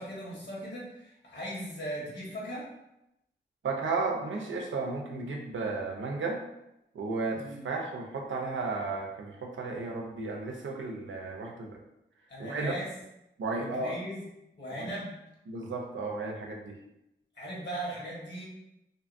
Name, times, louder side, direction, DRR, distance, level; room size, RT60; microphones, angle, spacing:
voice 1, 0.0-2.7 7.3-7.7 12.3-12.9 13.5-14.3 14.5-15.2 17.3-18.4, equal, 65° left, -5 dB, 1.2 m, -39 dB
voice 2, 3.6-6.4 6.9-11.8 12.4-12.8 13.4-13.9 14.8-14.9 15.5-16.8, right 3 dB, 80° right, 1 dB, 0.5 m, -34 dB
2.6 x 2.5 x 2.5 m, 0.87 s
cardioid pair, 50°, 20 cm